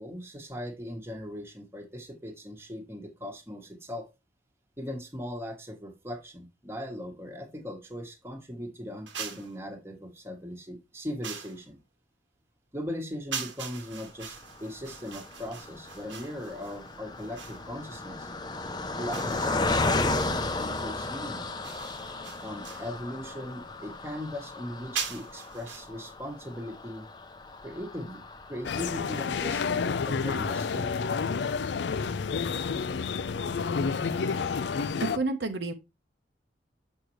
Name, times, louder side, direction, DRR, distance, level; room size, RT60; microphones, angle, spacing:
voice 1, 0.0-4.1 4.8-11.8 12.7-18.3 18.9-21.5 22.4-27.1 27.6-28.2 28.5-31.0, left 1 dB, 15° right, 1.2 m, -39 dB
sound 1, 9.1-9.6 11.2-11.6 13.3-17.7 19.1-19.9 21.6-22.9 24.9-25.8, right 7 dB, 90° right, 1.4 m, -40 dB
Car passing by, 14.4-29.9 30.4-30.5 30.7-30.9, left 2 dB, 25° left, 0.6 m, -34 dB
sound 2, 28.6-35.2, left 5 dB, 70° left, 0.4 m, -29 dB
voice 2, 35.0-35.7, right 3 dB, 70° right, 0.9 m, -29 dB
6.5 x 6.4 x 3.1 m
head